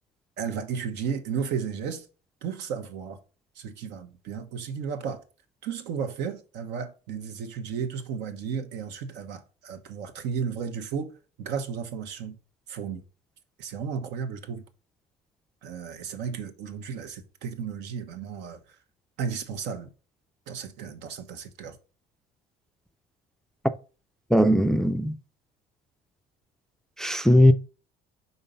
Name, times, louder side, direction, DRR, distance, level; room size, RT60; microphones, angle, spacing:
voice 1, 0.4-2.1 2.4-3.2 3.5-5.2 5.6-12.4 12.7-13.0 13.6-14.6 15.6-18.6 19.2-19.9 20.5-21.8, right 6 dB, 75° right, 1.2 m, -34 dB
voice 2, 24.3-25.2 27.0-27.5, equal, 5° left, 0.4 m, -19 dB
5.6 x 4.0 x 5.4 m
cardioid pair, 120°, 18 cm